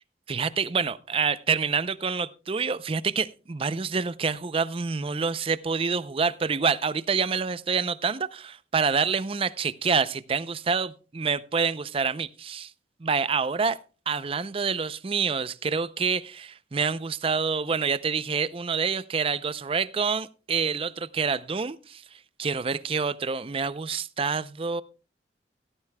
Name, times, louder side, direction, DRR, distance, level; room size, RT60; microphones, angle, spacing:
voice 1, 0.3-12.7 13.0-13.8 14.1-22.0 22.4-24.8, right 5 dB, 30° right, 0.5 m, -27 dB
16.5 x 13.0 x 2.2 m
head